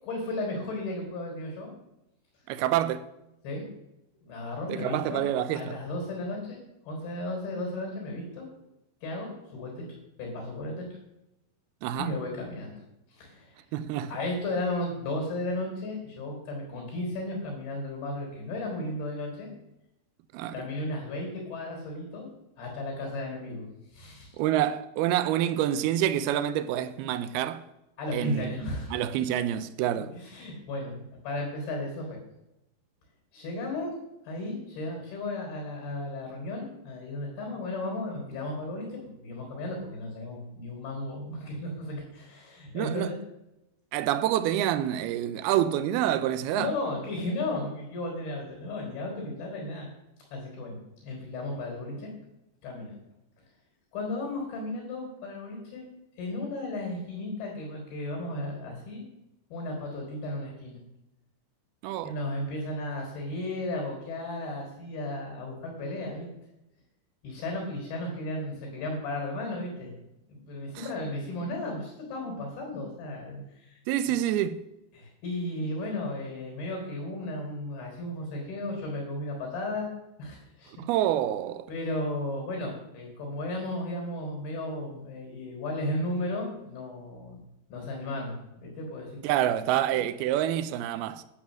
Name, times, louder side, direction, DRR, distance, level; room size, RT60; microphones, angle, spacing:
voice 1, 0.0-1.7 3.4-3.6 4.2-5.2 5.5-6.6 6.9-8.6 9.0-9.9 10.2-10.9 12.0-12.8 13.1-13.5 14.1-19.5 20.5-22.3 22.6-23.6 23.9-24.3 28.0-29.0 30.1-32.2 33.3-33.9 34.2-43.2 46.5-49.9 50.3-52.1 52.6-53.0 53.9-55.9 56.2-59.0 59.5-60.8 62.0-66.3 67.2-69.9 70.3-73.8 74.9-79.9 80.2-80.7 81.7-87.4 87.7-89.3, left 1 dB, 70° left, 5.8 m, -34 dB
voice 2, 2.5-3.1 4.7-5.8 11.8-12.2 13.7-14.1 20.3-20.6 24.4-27.6 28.1-30.2 42.7-43.1 43.9-46.7 61.8-62.2 70.8-70.9 73.9-74.6 80.8-81.7 89.2-91.2, right 11 dB, 80° right, 2.5 m, -27 dB
11.5 x 9.2 x 6.3 m
omnidirectional pair, 4.6 m